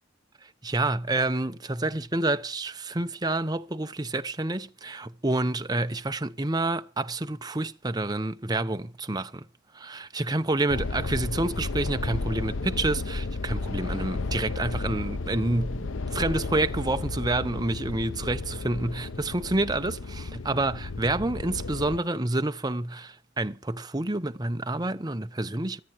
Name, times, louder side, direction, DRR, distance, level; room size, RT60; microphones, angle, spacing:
voice 1, 0.6-9.4 9.9-25.8, right 2 dB, 20° right, 0.9 m, -28 dB
sound 1, 10.7-22.0, left 3 dB, 80° left, 0.7 m, -33 dB
25.0 x 8.9 x 4.7 m
head